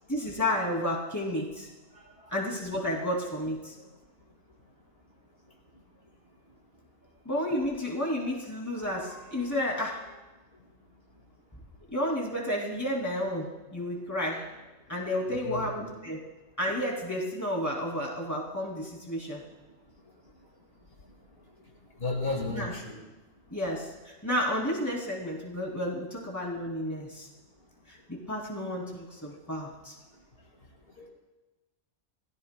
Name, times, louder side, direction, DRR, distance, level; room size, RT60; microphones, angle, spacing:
voice 1, 0.1-1.7 2.3-3.7 7.2-10.2 11.9-14.5 14.9-16.2 16.6-19.4 22.5-22.7 23.5-27.3 27.9-29.9, left 1 dB, 15° left, -2 dB, 2.6 m, -31 dB
voice 2, 15.3-15.9 22.0-22.9 31.0-31.1, left 3 dB, 55° left, 0 dB, 2.3 m, -33 dB
28.0 x 16.5 x 2.2 m, 1.1 s
omnidirectional pair, 1.2 m